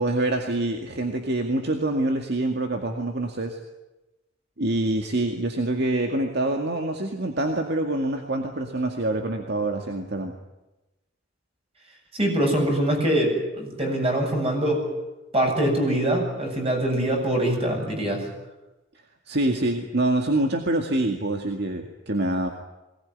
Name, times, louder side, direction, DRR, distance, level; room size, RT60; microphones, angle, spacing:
voice 1, 0.0-3.6 4.6-10.3 19.3-22.5, right 2 dB, 60° right, 3 dB, 2.2 m, -25 dB
voice 2, 12.1-14.9 15.3-18.3, right 1 dB, 35° right, 2 dB, 7.8 m, -23 dB
22.0 x 19.5 x 9.8 m, 1.0 s
head